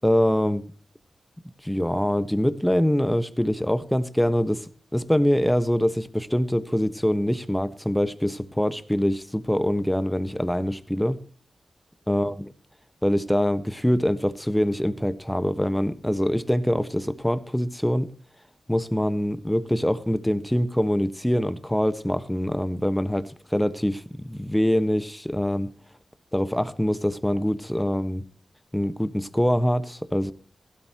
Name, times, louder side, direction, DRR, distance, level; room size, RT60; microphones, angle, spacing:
voice 1, 0.0-0.6 1.6-4.7 4.9-11.2 12.1-12.3 13.0-18.1 18.7-25.7 26.3-28.2 28.7-30.3, equal, 5° left, 13 dB, 1.4 m, -24 dB
16.0 x 12.5 x 3.0 m, 0.42 s
cardioid pair, 45°, 0 cm